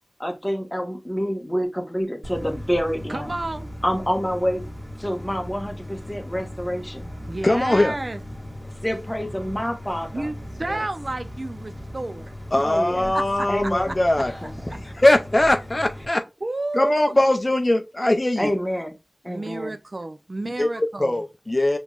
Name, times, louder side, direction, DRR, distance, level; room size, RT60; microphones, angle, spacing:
voice 1, 0.2-3.3 3.8-4.6 5.0-7.1 8.8-10.3 10.6-10.8 12.6-13.1 13.5-14.5 14.8-14.9 18.4-18.9 19.2-19.7, equal, 15° left, 1.2 m, -27 dB
sound 1, 2.2-16.0, left 1 dB, 15° right, 1.7 m, -38 dB
voice 2, 3.1-3.7 7.2-8.2 10.1-12.3 13.1-13.5 14.7-14.8 16.4-17.1 19.2-21.3, right 2 dB, 50° right, 0.5 m, -30 dB
voice 3, 7.4-7.9 12.5-14.3 15.0-16.2 16.7-18.5 20.6-21.8, left 1 dB, 35° left, 0.5 m, -20 dB
5.2 x 3.1 x 2.4 m
wide cardioid pair, 45°, 0 cm